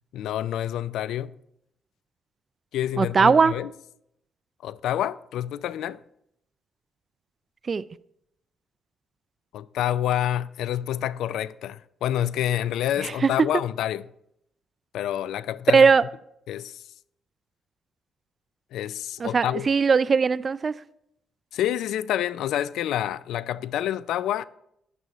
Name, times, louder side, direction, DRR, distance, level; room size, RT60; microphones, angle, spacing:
voice 1, 0.1-1.3 2.7-3.7 4.6-6.0 9.5-14.1 14.9-15.9 16.5-16.8 18.7-19.7 21.5-24.5, left 11 dB, 80° left, 0.3 m, -28 dB
voice 2, 3.0-3.5 7.7-7.8 13.0-13.3 15.7-16.0 19.2-20.7, right 5 dB, 40° right, 0.3 m, -19 dB
11.0 x 10.5 x 3.0 m
cardioid pair, 90°, 0 cm